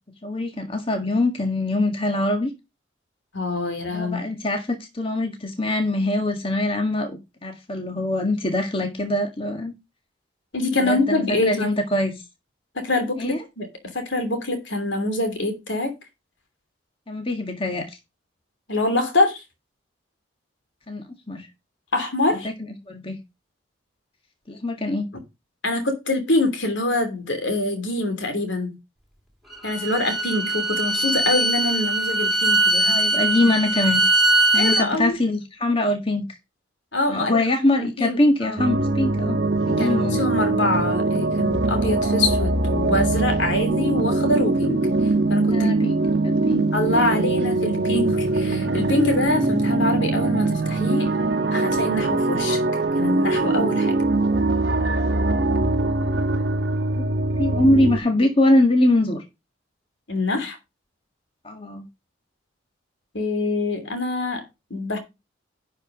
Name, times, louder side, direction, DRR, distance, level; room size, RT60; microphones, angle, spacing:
voice 1, 0.2-2.5 3.9-9.7 10.8-12.1 13.2-13.4 17.1-18.0 20.9-21.5 22.4-22.5 22.9-23.2 24.5-25.1 32.8-34.0 34.5-36.4 37.1-39.4 39.7-40.2 45.5-45.9 46.2-46.7 48.9-49.1 57.0-57.1 57.4-59.2 61.4-61.8, left 1 dB, 30° left, 1.7 m, -23 dB
voice 2, 3.3-4.2 10.5-11.7 12.7-13.7 13.9-15.9 18.7-19.4 21.9-22.5 25.6-28.8 29.6-33.0 34.5-35.2 36.9-37.4 37.8-38.6 39.8-45.7 46.7-51.1 51.5-52.6 53.0-53.9 60.1-60.6 63.1-65.0, left 2 dB, 75° left, 3.1 m, -25 dB
Bowed string instrument, 29.5-34.9, right 2 dB, ahead, 2.6 m, -21 dB
sound 1, 38.6-58.0, right 2 dB, 55° right, 1.2 m, -22 dB
11.5 x 4.8 x 5.2 m
head